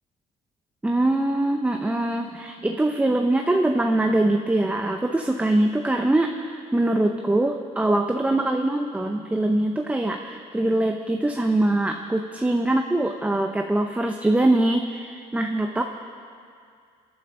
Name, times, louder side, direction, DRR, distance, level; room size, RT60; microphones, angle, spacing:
voice 1, 0.8-15.8, right 1 dB, 10° right, 4 dB, 0.7 m, -23 dB
29.5 x 10.5 x 3.8 m, 2.3 s
cardioid pair, 110°, 17 cm